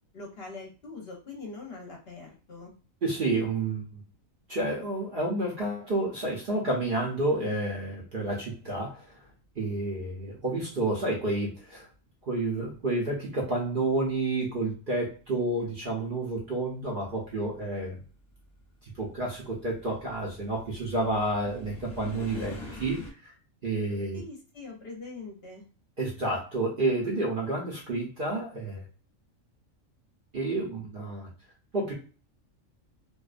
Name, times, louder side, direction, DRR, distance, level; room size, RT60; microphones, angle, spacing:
voice 1, 0.1-2.7 24.1-25.6, left 3 dB, 55° left, -1 dB, 0.8 m, -43 dB
voice 2, 3.0-4.0 4.5-9.2 9.5-11.9 12.2-18.0 19.0-23.3 23.6-24.2 26.0-28.9 30.3-31.3 31.7-31.9, right 2 dB, 50° right, -3 dB, 0.7 m, -30 dB
sound 1, 17.0-23.1, left 2 dB, 25° left, 0.9 m, -45 dB
2.5 x 2.2 x 2.4 m, 0.37 s
omnidirectional pair, 1.4 m